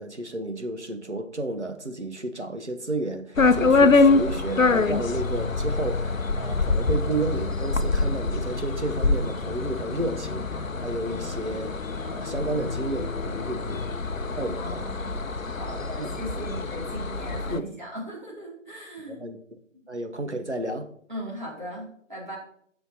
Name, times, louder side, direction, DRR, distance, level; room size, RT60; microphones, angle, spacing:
voice 1, 0.0-11.7 12.0-13.8 14.4-14.8 16.0-16.1 17.5-17.6 19.1-19.4 19.9-20.9, right 2 dB, 55° right, 1.0 m, -32 dB
sound 1, 3.4-17.6, left 3 dB, 75° left, 0.7 m, -25 dB
voice 2, 14.5-15.2 15.6-19.3 19.7-19.8 21.1-22.4, right 1 dB, 35° right, 2.7 m, -38 dB
11.0 x 6.8 x 2.8 m
figure-of-eight pair, 175°, 40 cm